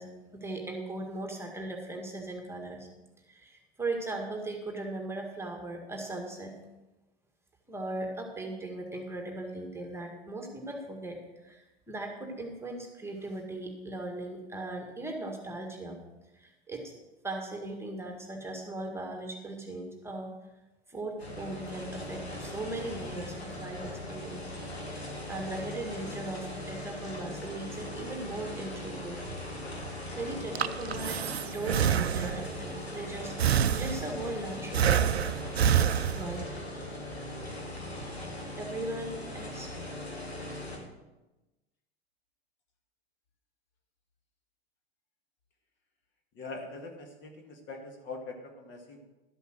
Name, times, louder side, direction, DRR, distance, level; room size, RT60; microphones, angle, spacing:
voice 1, 0.0-2.9 3.3-6.5 7.7-16.0 16.4-16.9 17.2-20.3 20.9-24.5 24.9-29.2 29.8-29.9 30.2-35.0 36.1-36.9 38.6-39.7, right 2 dB, 10° right, 2 dB, 1.9 m, -38 dB
sound 1, 21.2-40.8, left 1 dB, 80° left, 2.9 m, -40 dB
Breathing, 30.3-32.6 33.4-34.3 34.7-36.6, right 9 dB, 75° right, 0.6 m, -27 dB
voice 2, 46.4-49.1, left 3 dB, 35° left, 3 dB, 2.0 m, -43 dB
12.5 x 8.0 x 6.3 m, 1.0 s
figure-of-eight pair, 90°, 31 cm